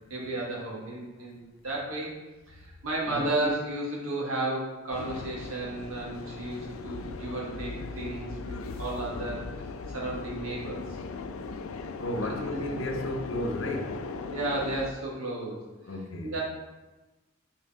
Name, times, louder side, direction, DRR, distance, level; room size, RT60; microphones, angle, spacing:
voice 1, 0.1-2.2 2.5-9.5 9.9-10.8 12.2-12.4 14.3-15.6 16.2-16.4, right 2 dB, 90° right, -4 dB, 1.9 m, -33 dB
voice 2, 3.1-3.5 12.0-14.0 15.8-16.3, left 1 dB, 65° left, 3 dB, 0.9 m, -33 dB
sound 1, 4.9-14.9, left 4 dB, 80° left, 0.4 m, -38 dB
5.8 x 4.3 x 4.2 m, 1.1 s
head